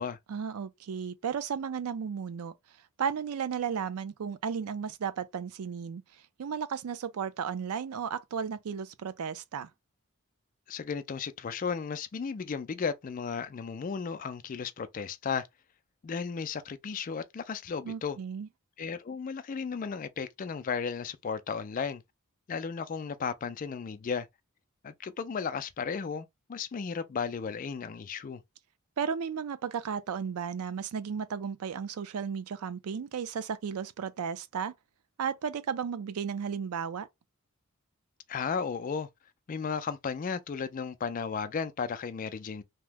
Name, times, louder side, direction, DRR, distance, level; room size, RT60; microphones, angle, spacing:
voice 1, 0.3-2.5 3.0-6.0 6.4-9.7 17.8-18.5 29.0-34.7 35.2-37.1, right 7 dB, 85° right, 0.4 m, -34 dB
voice 2, 10.7-15.5 16.0-18.2 18.8-22.0 22.5-24.3 24.8-28.4 38.3-39.1 39.5-42.6, left 6 dB, 40° left, 0.3 m, -34 dB
2.8 x 2.0 x 3.3 m
head